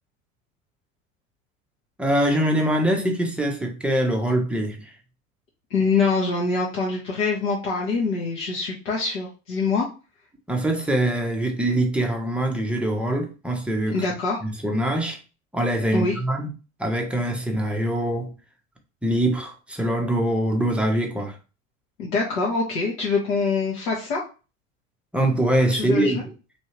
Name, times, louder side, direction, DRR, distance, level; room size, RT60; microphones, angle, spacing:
voice 1, 2.0-4.9 10.5-14.0 14.4-15.2 15.5-16.5 16.8-18.3 19.0-21.4 25.1-26.2, right 1 dB, 5° right, 0.6 m, -23 dB
voice 2, 5.7-9.9 13.9-14.4 15.9-16.1 22.0-24.2 25.7-26.2, left 4 dB, 60° left, 1.1 m, -24 dB
3.3 x 2.7 x 2.9 m
figure-of-eight pair, 75°, 42 cm